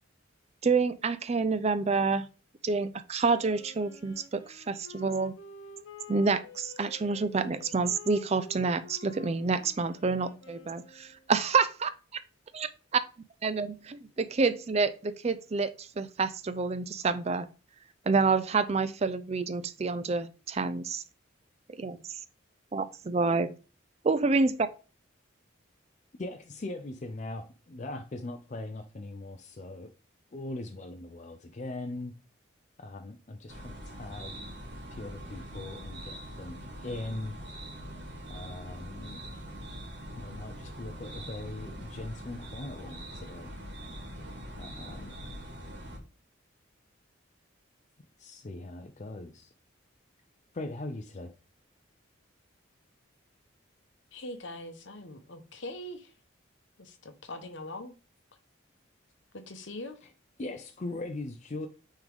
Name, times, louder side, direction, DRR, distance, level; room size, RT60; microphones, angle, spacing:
voice 1, 0.6-2.3 2.6-5.3 6.1-11.9 13.4-17.5 18.1-21.0 21.7-22.2 22.7-23.5 24.0-24.6, right 4 dB, 30° right, 0.4 m, -28 dB
Wind instrument woodwind instrument, 3.2-11.4, left 3 dB, 80° left, 1.3 m, -50 dB
voice 2, 26.2-29.9 30.3-32.1 32.8-34.3 34.9-37.4 38.3-39.2 40.2-43.5 44.6-45.1 48.2-49.5 50.5-51.3 60.4-61.7, left 2 dB, 35° left, 0.5 m, -40 dB
sound 1, 33.5-46.0, equal, 60° right, 2.0 m, -43 dB
voice 3, 54.1-56.1 56.8-58.0 59.3-60.0, left 1 dB, 65° left, 1.0 m, -42 dB
9.0 x 3.7 x 3.5 m
head